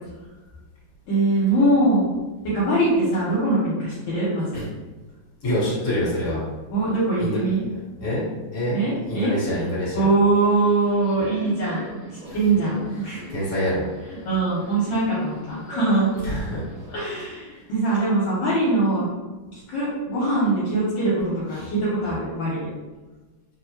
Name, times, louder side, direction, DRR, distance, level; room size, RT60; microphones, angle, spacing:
voice 1, 1.1-2.1 2.4-4.6 6.7-7.6 8.7-9.3 9.9-12.0 12.3-13.2 14.1-16.1 16.9-19.1 19.5-22.7, right 2 dB, 70° left, -8 dB, 1.3 m, -22 dB
voice 2, 5.4-6.4 7.2-7.4 8.0-8.8 9.1-10.0 12.3-12.4 13.3-13.9 16.2-16.6 21.6-21.7, left 1 dB, 40° left, -8 dB, 1.6 m, -26 dB
Subway metro underground, 10.4-17.0, right 1 dB, 70° right, 1.5 m, -42 dB
3.4 x 2.1 x 2.8 m, 1.2 s
omnidirectional pair, 2.3 m